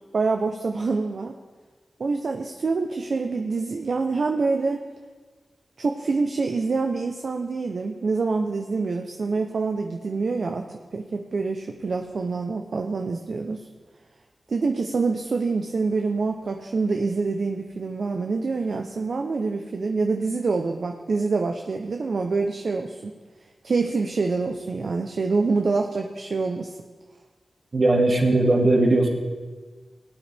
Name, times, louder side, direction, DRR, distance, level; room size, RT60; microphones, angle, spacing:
voice 1, 0.1-1.3 2.0-4.8 5.8-10.6 10.9-13.6 14.5-23.1 23.6-26.7, right 4 dB, 70° right, 4 dB, 0.7 m, -26 dB
voice 2, 27.7-29.1, right 2 dB, 55° right, 0 dB, 2.1 m, -19 dB
18.0 x 8.7 x 3.4 m, 1.4 s
cardioid pair, 45°, 0 cm